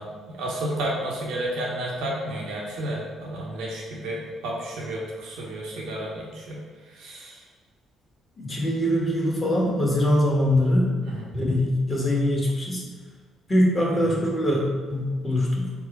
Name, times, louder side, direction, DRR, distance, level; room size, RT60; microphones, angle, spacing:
voice 1, 0.0-6.6 6.9-7.4 11.0-11.3, right 1 dB, 75° right, -4 dB, 1.0 m, -31 dB
voice 2, 8.4-10.9 11.3-12.8 13.5-15.7, left 1 dB, 30° left, -3 dB, 1.3 m, -23 dB
4.7 x 2.1 x 4.1 m, 1.5 s
hypercardioid pair, 50°, 0 cm